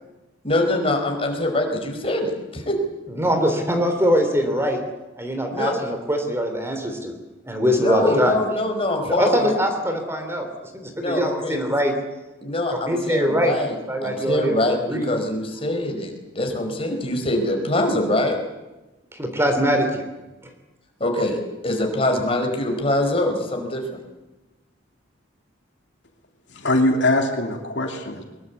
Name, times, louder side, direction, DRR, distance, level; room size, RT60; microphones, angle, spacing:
voice 1, 0.4-2.8 5.5-5.7 7.7-9.5 11.0-11.6 12.4-13.7 14.0-18.4 21.0-24.0, left 1 dB, 30° left, 3 dB, 4.9 m, -24 dB
voice 2, 3.1-4.8 5.2-7.1 7.5-8.4 9.0-10.5 10.7-11.9 12.7-14.6 14.9-15.1 19.1-20.1, equal, 15° right, 5 dB, 3.4 m, -22 dB
voice 3, 26.5-28.2, left 1 dB, 60° left, 3 dB, 2.9 m, -21 dB
23.5 x 22.0 x 8.4 m, 1.1 s
head